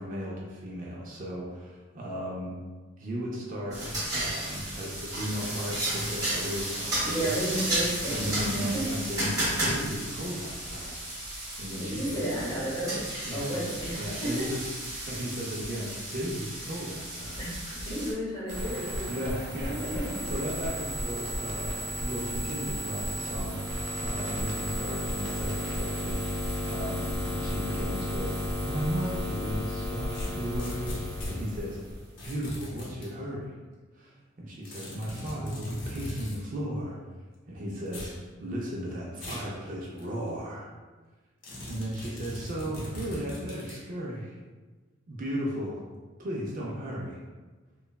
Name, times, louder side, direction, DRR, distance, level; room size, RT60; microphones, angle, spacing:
voice 1, 0.0-2.5 3.0-3.8 4.1-7.4 8.1-11.0 11.6-12.4 13.2-13.6 14.0-14.7 15.1-17.4 19.1-21.7 22.0-26.2 26.6-31.8 32.2-33.5 33.9-37.0 37.5-40.7 41.7-44.4 45.1-45.8 46.2-47.2, equal, 40° right, -3 dB, 0.4 m, -35 dB
sound 1, 3.7-18.1, right 1 dB, 15° right, 0.7 m, -33 dB
voice 2, 7.0-8.9 11.7-13.0 13.3-14.5 17.4-19.1 19.9-20.0, right 1 dB, 20° left, -8 dB, 0.9 m, -33 dB
sound 2, 18.5-32.3, equal, 75° right, 0.7 m, -33 dB
sound 3, 30.1-31.4 32.2-33.1 34.6-36.4 37.9-38.2 39.2-39.5 40.0-40.1 41.4-43.8, left 1 dB, 70° left, 0.7 m, -39 dB
3.0 x 2.2 x 2.2 m, 1.3 s
head